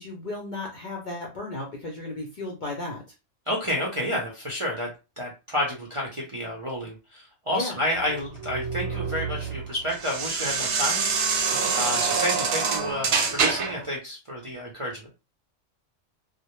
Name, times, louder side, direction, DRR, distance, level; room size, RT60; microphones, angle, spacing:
voice 1, 0.0-3.0 7.5-7.8, left 2 dB, 55° left, -1 dB, 0.5 m, -34 dB
voice 2, 3.5-4.9 5.2-11.1 11.7-15.1, left 1 dB, 40° right, -3 dB, 0.4 m, -30 dB
sound 1, 8.0-13.9, right 5 dB, 65° right, 0.7 m, -26 dB
2.1 x 2.0 x 2.9 m, 0.29 s
omnidirectional pair, 1.3 m